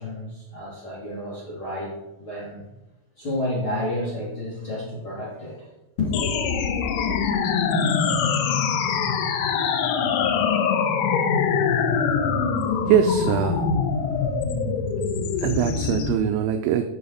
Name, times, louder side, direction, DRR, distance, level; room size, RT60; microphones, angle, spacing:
voice 1, 0.0-2.7 3.2-5.7 6.0-6.3, left 2 dB, 40° left, -7 dB, 2.0 m, -30 dB
sound 1, 6.1-16.1, left 6 dB, 90° left, 3.7 m, -23 dB
voice 2, 12.8-13.7 15.4-16.8, right 9 dB, 90° right, 6 dB, 2.5 m, -22 dB
12.5 x 7.0 x 4.2 m, 0.98 s
omnidirectional pair, 5.9 m